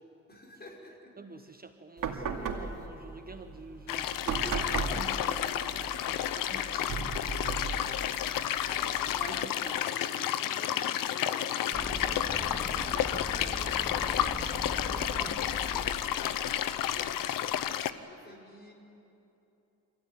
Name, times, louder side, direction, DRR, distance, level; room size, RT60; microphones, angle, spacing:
voice 1, 0.0-1.2 7.4-8.0 8.7-17.7 18.1-18.7, left 1 dB, 30° left, 0 dB, 5.5 m, -51 dB
voice 2, 1.2-7.4 9.3-10.0, right 3 dB, 30° right, 7 dB, 1.2 m, -48 dB
sound 1, 2.0-9.4, right 5 dB, 75° right, 2.6 m, -38 dB
sound 2, 3.9-17.9, left 11 dB, 85° left, 0.8 m, -31 dB
sound 3, 11.7-17.7, equal, 5° right, 2.1 m, -41 dB
25.5 x 16.0 x 9.6 m, 2.9 s
cardioid pair, 75°, 32 cm